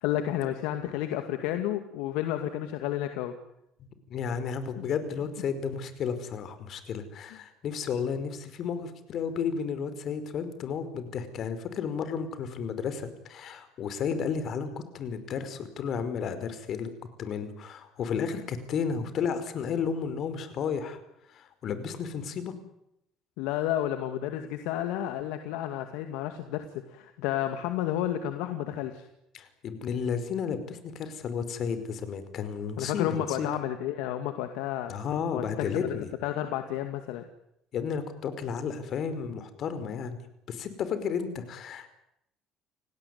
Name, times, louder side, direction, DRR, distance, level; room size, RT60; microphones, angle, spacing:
voice 1, 0.0-3.3 4.8-4.9 23.4-29.1 32.8-34.9 35.3-36.0 36.2-37.2, left 12 dB, 75° left, 7 dB, 2.3 m, -31 dB
voice 2, 4.1-16.9 17.2-21.0 21.3-22.5 29.3-33.5 34.9-36.1 37.7-40.2 40.5-41.9, left 6 dB, 55° left, 11 dB, 5.1 m, -32 dB
29.5 x 18.5 x 9.7 m, 0.82 s
hypercardioid pair, 65°, 0 cm